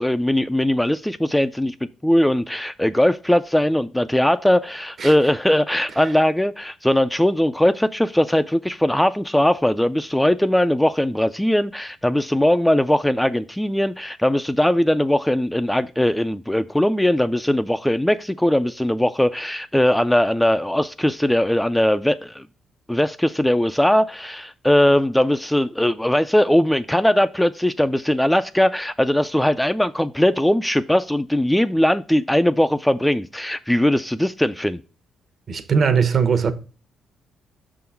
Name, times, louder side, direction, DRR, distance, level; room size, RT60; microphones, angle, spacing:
voice 1, 0.0-22.4 22.9-34.8, left 1 dB, 5° left, 0.3 m, -20 dB
voice 2, 35.5-36.5, right 6 dB, 50° right, 0.9 m, -19 dB
6.0 x 3.8 x 5.7 m
cardioid pair, 90°, 0 cm